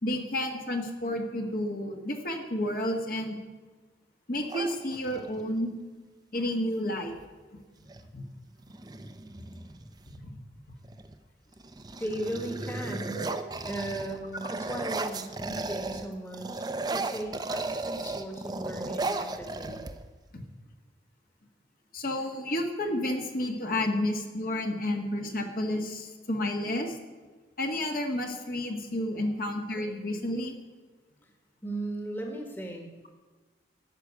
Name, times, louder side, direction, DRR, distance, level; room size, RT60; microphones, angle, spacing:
voice 1, 0.0-3.4 4.3-5.7 6.3-7.2 8.1-8.2 13.1-13.4 21.9-27.0 27.6-30.6, left 1 dB, 50° left, 2 dB, 1.6 m, -31 dB
sound 1, 4.5-5.4 7.1-7.3 7.6-8.1 8.6-10.1 10.8-11.2 11.5-16.1 16.3-20.3, right 3 dB, 25° right, 0.6 m, -35 dB
voice 2, 12.0-13.3 13.6-19.8 31.6-32.9, right 1 dB, 10° left, 2 dB, 1.4 m, -37 dB
13.0 x 6.2 x 9.5 m, 1.3 s
head